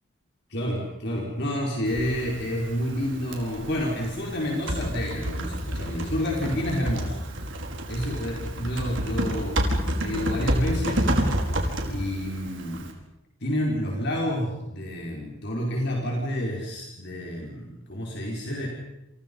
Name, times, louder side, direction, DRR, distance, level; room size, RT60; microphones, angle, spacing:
voice 1, 0.5-7.2 7.9-9.7 10.0-11.1 11.9-12.9 13.4-18.7, equal, 50° left, -2 dB, 5.2 m, -29 dB
Typing, 1.9-12.9, right 1 dB, 55° right, 4.7 m, -29 dB
29.5 x 28.5 x 5.6 m, 0.91 s
head